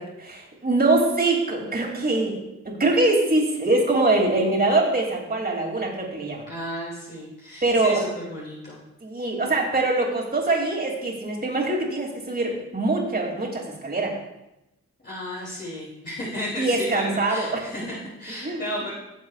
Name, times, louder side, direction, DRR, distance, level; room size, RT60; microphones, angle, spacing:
voice 1, 0.2-2.4 2.6-6.4 7.6-8.0 9.0-14.1 16.6-17.6 18.4-18.6, right 2 dB, 30° right, -1 dB, 2.8 m, -23 dB
voice 2, 6.5-8.8 15.0-18.9, left 1 dB, 35° left, -8 dB, 3.2 m, -33 dB
17.5 x 7.3 x 2.5 m, 0.93 s
cardioid pair, 90°, 29 cm